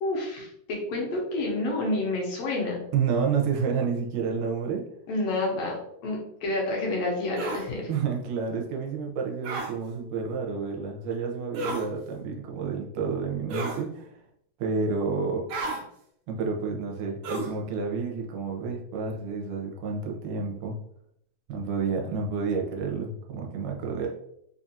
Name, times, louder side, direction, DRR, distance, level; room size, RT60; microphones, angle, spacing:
voice 1, 0.0-2.8 5.1-5.8 6.0-7.9, left 2 dB, 65° left, -2 dB, 1.7 m, -29 dB
voice 2, 2.9-4.8 7.8-14.1 14.6-15.5 16.3-20.8 21.5-24.1, right 5 dB, 90° right, 1 dB, 2.3 m, -30 dB
sound 1, 7.4-7.7 9.4-9.7 11.5-11.9 13.5-13.8 15.5-15.8 17.2-17.6, right 2 dB, 75° right, 1.8 m, -31 dB
5.2 x 2.4 x 2.7 m, 0.72 s
omnidirectional pair, 3.8 m